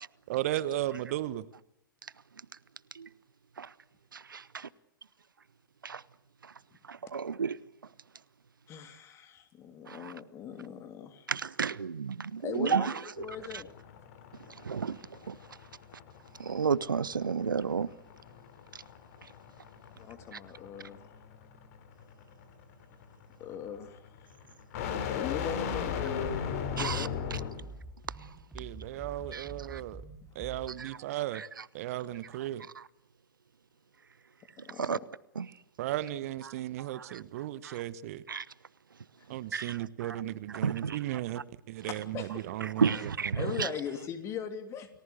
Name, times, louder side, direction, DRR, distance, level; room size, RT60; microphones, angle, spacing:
voice 1, 0.3-1.4 28.5-30.0 30.3-31.4 31.7-32.7 35.8-38.2 39.3-41.4 41.7-43.1 43.4-43.5, right 14 dB, 45° right, 1.1 m, -35 dB
voice 2, 7.1-7.6 10.0-10.1 11.3-12.9 14.7-15.0 15.3-15.4 16.4-17.9 26.8-27.1 29.3-29.8 30.8-30.9 34.8-35.0 35.4-35.5 36.9-37.0 37.6-37.7 38.3-38.4 39.5-40.2 40.6-41.0 42.8-43.7, right 6 dB, 70° right, 0.9 m, -31 dB
voice 3, 8.7-11.3 12.4-13.7 19.9-21.0 23.4-24.0 25.1-27.1 29.1-29.4 34.6-35.0 41.9-42.4 42.9-43.0 43.3-44.9, left 8 dB, 25° left, 3.1 m, -40 dB
sound 1, 13.2-27.7, left 7 dB, 45° left, 3.2 m, -38 dB
sound 2, 25.7-30.7, right 2 dB, 5° right, 3.6 m, -47 dB
29.5 x 19.0 x 8.1 m
figure-of-eight pair, 110°, 11 cm